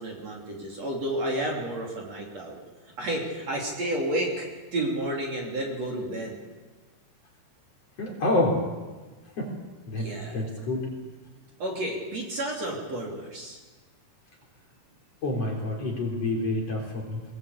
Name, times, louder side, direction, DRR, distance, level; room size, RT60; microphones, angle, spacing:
voice 1, 0.0-2.6 3.0-4.5 4.7-6.4 10.0-10.4 11.6-13.6, right 1 dB, 40° right, -1 dB, 3.9 m, -31 dB
voice 2, 8.0-8.6 9.4-9.5 9.9-10.9 15.2-17.2, left 2 dB, 40° left, 0 dB, 4.3 m, -28 dB
21.0 x 21.0 x 8.4 m, 1.3 s
omnidirectional pair, 4.9 m